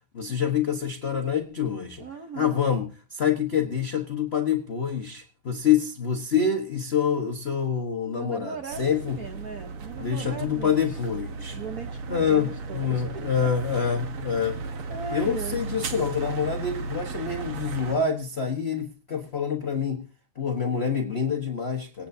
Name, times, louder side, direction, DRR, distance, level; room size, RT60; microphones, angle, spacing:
voice 1, 0.1-2.0 2.3-9.2 10.0-11.6 12.1-14.6 15.1-20.0 20.3-22.1, left 7 dB, 35° left, 3 dB, 1.3 m, -26 dB
voice 2, 2.0-2.6 8.1-11.0 11.5-13.0 14.9-15.6, right 5 dB, 50° right, 5 dB, 1.4 m, -38 dB
sound 1, 8.7-18.0, right 4 dB, 80° right, 2.2 m, -35 dB
26.0 x 9.1 x 2.8 m, 0.35 s
omnidirectional pair, 2.3 m